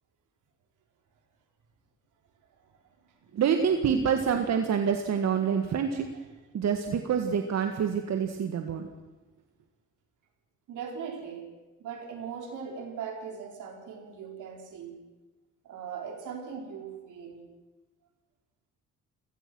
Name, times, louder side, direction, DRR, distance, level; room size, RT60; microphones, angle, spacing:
voice 1, 3.3-6.1 6.5-8.9, right 7 dB, 60° right, 5 dB, 1.8 m, -27 dB
voice 2, 10.7-11.5 11.8-15.0 15.6-17.4, right 6 dB, 80° right, 3 dB, 4.3 m, -39 dB
29.5 x 17.5 x 6.3 m, 1.2 s
cardioid pair, 90°, 30 cm